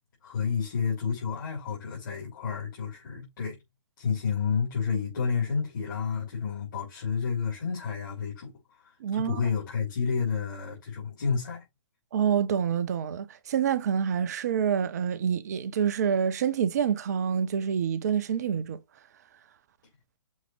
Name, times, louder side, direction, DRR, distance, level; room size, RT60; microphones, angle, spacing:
voice 1, 0.2-3.6 4.0-8.5 9.1-11.6, left 6 dB, 40° left, 4.0 m, -30 dB
voice 2, 9.0-9.4 12.1-18.8, right 8 dB, 35° right, 0.6 m, -27 dB
6.3 x 5.6 x 3.3 m
figure-of-eight pair, 130°, 16 cm